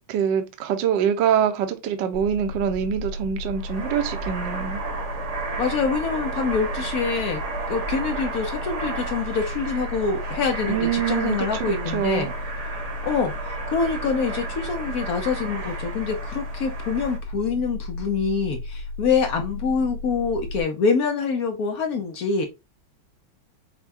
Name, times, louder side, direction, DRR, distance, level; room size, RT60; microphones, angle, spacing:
voice 1, 0.1-4.8 10.7-12.3, right 8 dB, 70° right, 1.2 m, -24 dB
sound 1, 2.1-20.6, left 2 dB, 85° right, 2.8 m, -34 dB
sound 2, 3.5-17.2, right 4 dB, 45° right, 1.0 m, -34 dB
voice 2, 5.6-7.4 7.7-12.3 13.0-22.4, left 5 dB, 70° left, 0.8 m, -25 dB
5.8 x 2.2 x 2.6 m
omnidirectional pair, 2.3 m